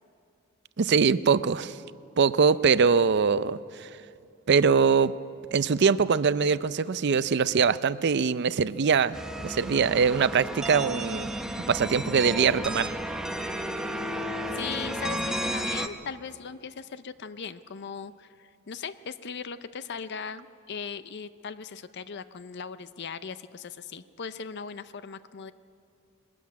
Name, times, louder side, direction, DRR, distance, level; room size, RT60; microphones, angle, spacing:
voice 1, 0.8-1.8 2.2-3.9 4.5-5.1 5.5-9.2 9.4-11.3 11.7-12.9, right 5 dB, 50° right, 16 dB, 0.5 m, -23 dB
sound 1, 9.1-15.9, equal, 5° right, 0.8 m, -32 dB
voice 2, 14.2-25.5, left 6 dB, 50° left, 13 dB, 0.5 m, -39 dB
21.5 x 13.0 x 9.4 m, 2.5 s
head